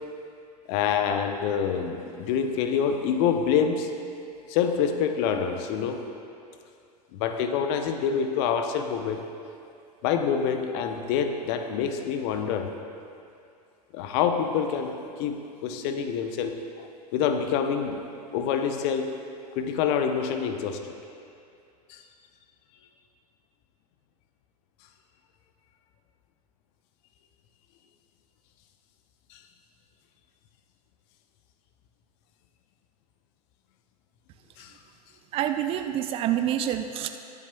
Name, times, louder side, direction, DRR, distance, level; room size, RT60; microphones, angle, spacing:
voice 1, 0.7-3.9 4.5-6.0 7.2-9.2 10.0-12.7 13.9-16.6 17.1-18.0 18.3-19.1 19.6-20.8 21.9-22.0 34.6-34.7, left 7 dB, 40° left, 6 dB, 0.7 m, -26 dB
voice 2, 35.3-37.1, right 11 dB, 30° right, 8 dB, 0.4 m, -27 dB
21.5 x 7.3 x 2.2 m, 2.5 s
figure-of-eight pair, 90°, 21 cm